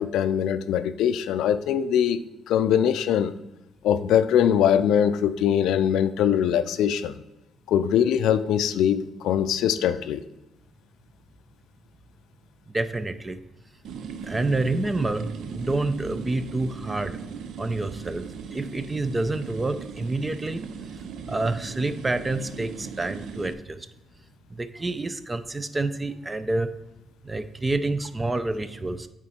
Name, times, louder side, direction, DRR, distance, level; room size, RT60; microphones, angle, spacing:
voice 1, 0.0-2.2 2.5-3.4 3.8-7.1 7.7-10.2, left 9 dB, 85° left, 0.4 m, -22 dB
voice 2, 12.7-13.4 14.2-17.2 17.6-18.2 18.5-20.6 21.3-23.9 24.5-26.7 27.2-29.1, right 2 dB, 20° right, 0.5 m, -28 dB
sound 1, 13.8-23.5, right 6 dB, 75° right, 0.5 m, -38 dB
8.8 x 3.7 x 4.3 m
cardioid pair, 90°, 0 cm